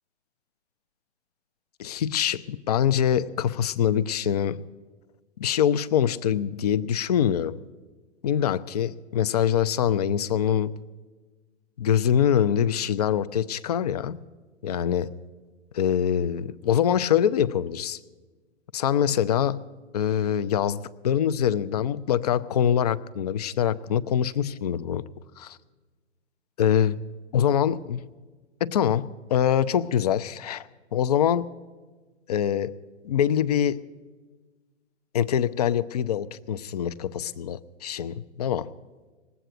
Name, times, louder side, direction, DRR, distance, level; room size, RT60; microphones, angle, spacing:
voice 1, 1.8-4.6 5.4-7.6 8.2-10.7 11.8-14.2 14.6-15.1 15.7-18.0 18.7-19.6 19.9-25.0 25.4-25.6 26.6-27.0 27.3-28.1 28.6-31.5 32.3-32.7 33.0-33.8 35.1-38.7, left 9 dB, 35° left, 17 dB, 0.4 m, -24 dB
19.5 x 8.1 x 7.5 m, 1.3 s
figure-of-eight pair, 115°, 35 cm